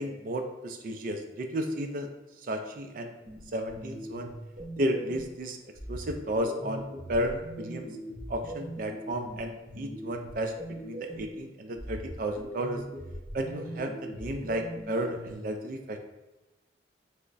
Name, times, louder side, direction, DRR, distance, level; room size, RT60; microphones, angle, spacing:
voice 1, 0.0-2.1 2.4-3.1 3.5-4.3 4.8-5.6 5.9-7.9 8.3-10.5 10.8-12.8 13.3-16.0, right 1 dB, 45° right, 5 dB, 0.3 m, -33 dB
sound 1, 3.2-5.4 5.8-11.4 11.8-15.3, right 1 dB, 30° right, 0.7 m, -41 dB
3.4 x 2.1 x 3.9 m, 1.1 s
head